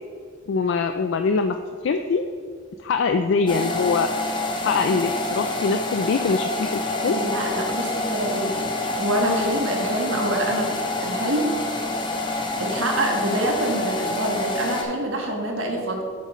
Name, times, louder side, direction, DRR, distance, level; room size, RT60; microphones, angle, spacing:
voice 1, 0.5-1.6 1.8-2.2 2.8-4.1 4.6-7.1, left 4 dB, 60° left, 7 dB, 0.3 m, -23 dB
sound 1, 3.5-14.8, left 2 dB, 25° left, 0.6 m, -27 dB
voice 2, 7.0-10.7 11.0-11.5 12.6-16.0, right 1 dB, 70° right, 1 dB, 1.3 m, -26 dB
8.4 x 7.5 x 3.1 m, 2.1 s
head